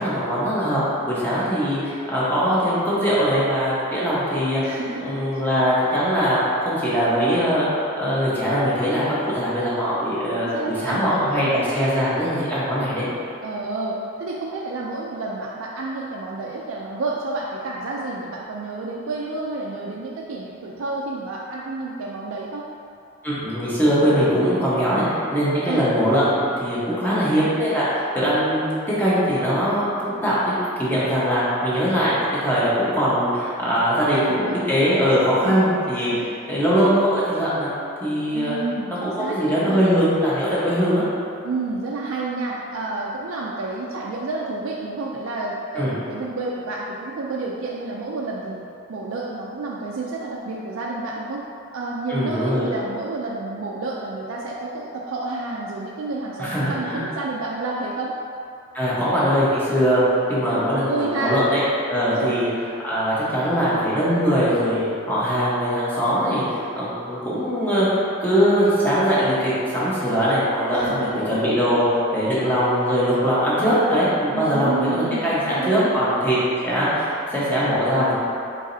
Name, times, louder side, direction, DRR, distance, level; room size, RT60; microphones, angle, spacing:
voice 1, 0.0-4.6 5.0-7.7 8.0-13.1 23.2-25.0 25.3-30.5 30.8-36.1 36.5-37.7 38.0-38.5 39.0-41.0 45.7-45.9 52.1-52.7 56.4-57.1 58.7-61.6 61.9-62.5 62.8-67.9 68.2-71.8 72.1-76.4 76.6-78.1, equal, 10° left, -10 dB, 1.0 m, -21 dB
voice 2, 4.6-5.5 10.4-11.5 13.4-22.6 25.6-25.9 34.0-34.6 35.4-36.3 38.3-39.8 41.4-48.6 48.9-51.4 51.7-58.1 60.5-61.4 62.1-62.4 70.7-71.4 74.3-76.0, right 3 dB, 70° right, -3 dB, 0.4 m, -30 dB
4.9 x 4.0 x 2.7 m, 2.6 s
head